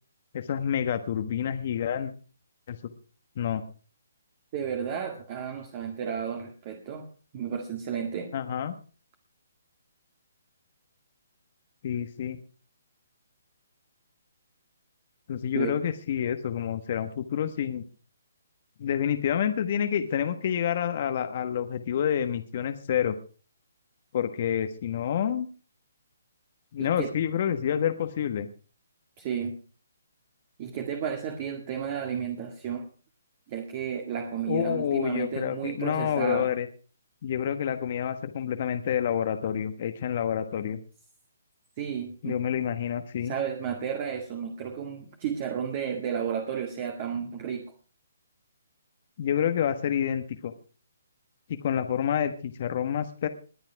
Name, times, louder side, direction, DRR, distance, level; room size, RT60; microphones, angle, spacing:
voice 1, 0.3-2.1 2.7-2.8 3.4-3.6 8.3-8.7 11.8-12.4 15.3-17.8 18.8-23.2 24.1-25.5 26.7-28.5 34.5-36.7 37.2-40.8 42.2-43.4 49.2-50.5 51.5-53.3, left 9 dB, 45° left, 8 dB, 1.3 m, -28 dB
voice 2, 4.5-7.1 7.3-8.3 15.5-15.7 26.8-27.1 29.2-29.6 30.6-32.9 33.5-36.5 41.8-42.4 43.2-47.7, right 8 dB, 35° right, 5 dB, 2.0 m, -32 dB
21.0 x 8.8 x 4.7 m, 0.38 s
hypercardioid pair, 145°, 0 cm